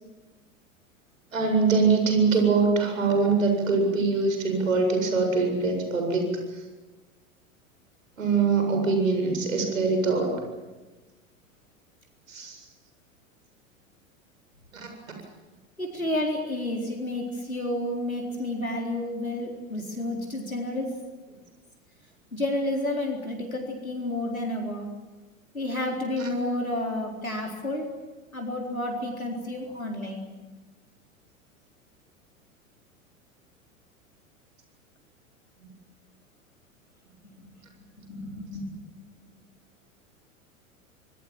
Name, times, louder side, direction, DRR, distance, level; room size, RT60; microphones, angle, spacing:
voice 1, 1.3-6.4 8.2-10.3 12.3-12.6 14.7-14.9 26.2-26.3, right 4 dB, 75° right, 4 dB, 7.8 m, -23 dB
voice 2, 15.8-21.0 22.3-24.9 25.5-27.9 28.3-30.2 38.0-38.8, left 1 dB, 90° left, 0 dB, 4.0 m, -30 dB
26.0 x 21.0 x 7.6 m, 1.2 s
figure-of-eight pair, 90°, 41 cm